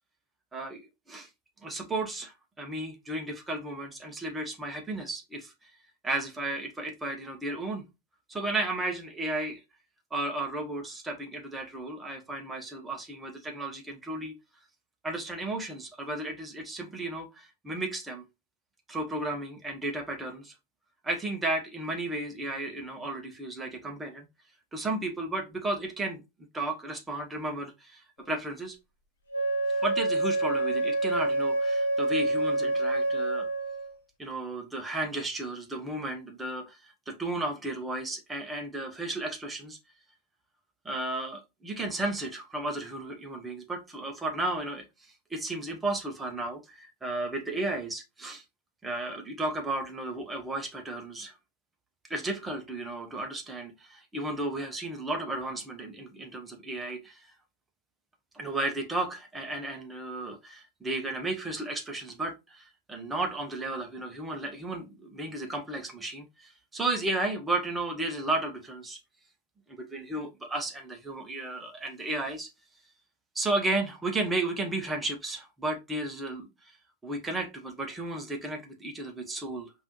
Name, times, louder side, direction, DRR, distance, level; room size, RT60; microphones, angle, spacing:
voice 1, 0.5-1.3 1.6-5.7 6.0-7.8 8.3-9.6 10.1-14.3 15.0-18.2 18.9-20.5 21.0-24.3 24.7-26.2 26.5-28.8 29.7-33.5 34.2-39.8 40.8-48.4 48.8-51.3 52.1-57.3 58.3-69.0 69.7-72.5 73.3-76.7 77.0-79.7, right 2 dB, 10° right, 0.9 m, -34 dB
Wind instrument woodwind instrument, 29.3-34.0, right 2 dB, 65° left, 0.9 m, -27 dB
5.2 x 2.7 x 3.0 m
figure-of-eight pair, 90°, 0 cm